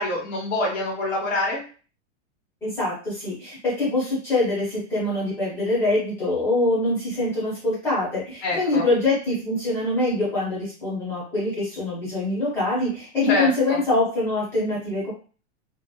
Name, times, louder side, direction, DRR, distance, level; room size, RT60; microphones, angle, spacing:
voice 1, 0.0-1.6 8.4-8.8 13.2-13.8, left 2 dB, 65° left, -4 dB, 1.2 m, -26 dB
voice 2, 2.6-15.1, left 2 dB, 5° left, -8 dB, 0.5 m, -24 dB
2.7 x 2.0 x 2.2 m, 0.38 s
supercardioid pair, 180°, 39 cm